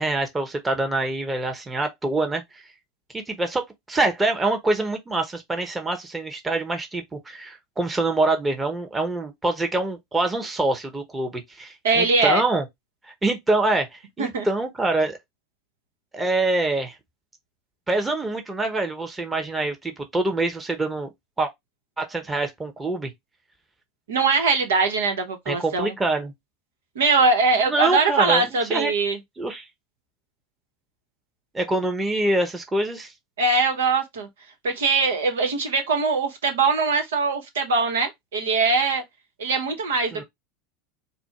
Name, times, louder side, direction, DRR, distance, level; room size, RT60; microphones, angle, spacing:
voice 1, 0.0-2.4 3.1-12.6 13.1-15.2 16.1-17.0 17.9-21.1 21.4-21.5 22.0-23.1 25.5-26.3 27.6-28.9 29.4-29.7 31.5-33.1 40.1-40.2, right 2 dB, 15° right, 1.1 m, -25 dB
voice 2, 11.8-12.4 14.2-14.5 24.1-25.9 26.9-29.2 33.4-34.3 34.6-39.0 39.4-40.2, right 4 dB, 80° right, 1.2 m, -22 dB
4.3 x 2.3 x 4.4 m
hypercardioid pair, 85°, 0 cm